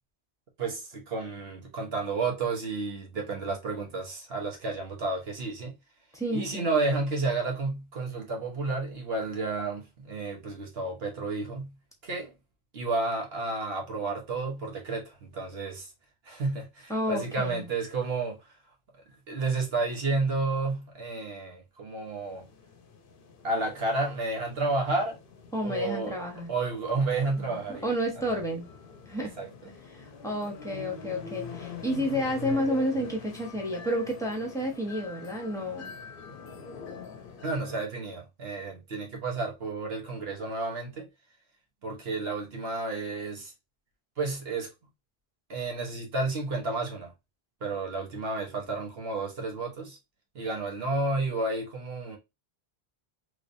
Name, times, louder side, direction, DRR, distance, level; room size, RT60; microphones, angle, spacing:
voice 1, 0.6-5.7 6.3-11.7 12.0-12.3 12.7-15.9 16.3-18.4 19.3-22.5 23.4-25.2 25.6-26.2 26.5-27.9 29.4-29.5 37.4-41.1 41.8-43.5 44.2-44.7 45.5-47.1 47.6-50.0 50.3-52.2, right 3 dB, 65° right, 1.3 m, -31 dB
voice 2, 6.1-6.7 16.9-17.7 25.5-26.5 27.4-28.6 29.1-29.3 29.6-36.0, equal, 5° left, 1.0 m, -31 dB
sound 1, 22.1-37.8, left 4 dB, 60° left, 0.8 m, -44 dB
3.3 x 3.2 x 2.6 m
omnidirectional pair, 1.1 m